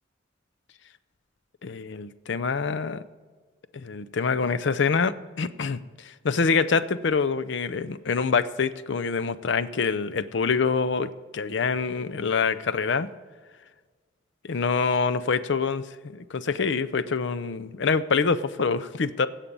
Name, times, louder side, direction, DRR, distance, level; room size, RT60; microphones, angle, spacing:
voice 1, 1.6-3.0 3.7-13.1 14.5-19.3, left 5 dB, 60° left, 13 dB, 0.5 m, -26 dB
17.0 x 7.4 x 5.4 m, 1.5 s
head